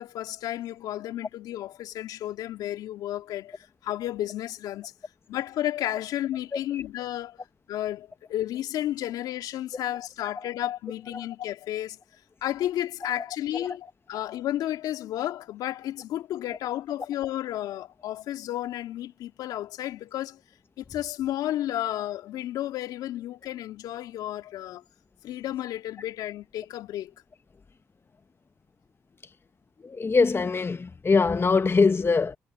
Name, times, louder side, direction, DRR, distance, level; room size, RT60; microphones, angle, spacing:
voice 1, 0.0-4.9 5.3-7.4 7.7-12.0 12.4-20.4 20.8-24.8 25.2-27.1, left 13 dB, 80° left, 2.5 m, -32 dB
voice 2, 6.5-6.8 11.1-11.3 13.5-13.7 29.8-32.4, left 4 dB, 35° left, 1.1 m, -23 dB
hypercardioid pair, 45°, 7 cm